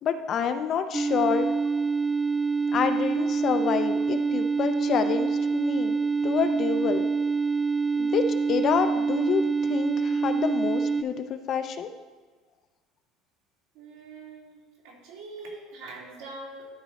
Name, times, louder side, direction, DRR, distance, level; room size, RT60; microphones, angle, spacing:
voice 1, 0.0-1.5 2.7-6.0 6.2-7.1 8.0-11.9, left 7 dB, 45° left, 9 dB, 0.6 m, -28 dB
sound 1, 0.9-11.0, right 4 dB, 15° right, 0.3 m, -26 dB
voice 2, 13.7-14.6 14.8-16.7, right 2 dB, 75° right, -3 dB, 2.6 m, -42 dB
12.5 x 4.5 x 4.1 m, 1.4 s
supercardioid pair, 120°, 0 cm